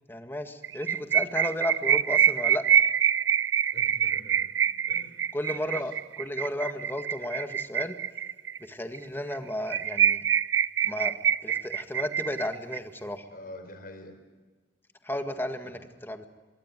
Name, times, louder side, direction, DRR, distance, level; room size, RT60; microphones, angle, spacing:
voice 1, 0.1-2.6 5.3-8.0 8.6-10.3 10.8-11.1 11.4-13.3 15.0-16.3, left 1 dB, 10° left, 7 dB, 1.8 m, -33 dB
sound 1, 0.6-8.6 8.9-9.0 9.3-9.4 9.7-12.8, right 9 dB, 85° right, 0.8 m, -25 dB
voice 2, 3.7-4.5 4.9-5.9 13.3-14.2 15.6-15.8, left 1 dB, 50° left, 8 dB, 4.6 m, -47 dB
24.5 x 23.0 x 9.2 m, 1.4 s
head